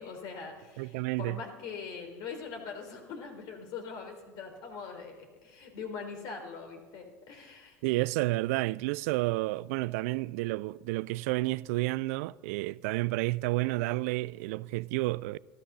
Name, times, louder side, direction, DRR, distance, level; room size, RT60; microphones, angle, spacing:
voice 1, 0.0-7.8, left 5 dB, 60° left, 3.4 m, -42 dB
voice 2, 0.8-1.4 7.8-15.4, right 20 dB, 75° right, 0.4 m, -30 dB
13.0 x 13.0 x 6.7 m
hypercardioid pair, 85°, 8 cm